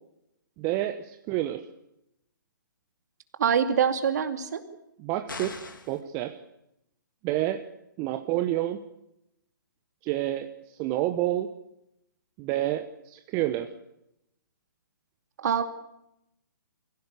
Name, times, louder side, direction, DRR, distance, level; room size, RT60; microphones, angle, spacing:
voice 1, 0.6-1.7 5.0-5.6 5.9-6.4 7.2-7.7 8.0-8.8 10.0-10.5 10.8-11.5 12.4-13.7, right 14 dB, 25° right, 8 dB, 1.0 m, -29 dB
voice 2, 3.4-4.6 15.4-15.6, right 7 dB, 55° right, 8 dB, 2.5 m, -24 dB
sound 1, 5.3-6.0, left 3 dB, 75° left, 3.1 m, -39 dB
24.0 x 16.5 x 8.3 m, 0.84 s
figure-of-eight pair, 130°, 11 cm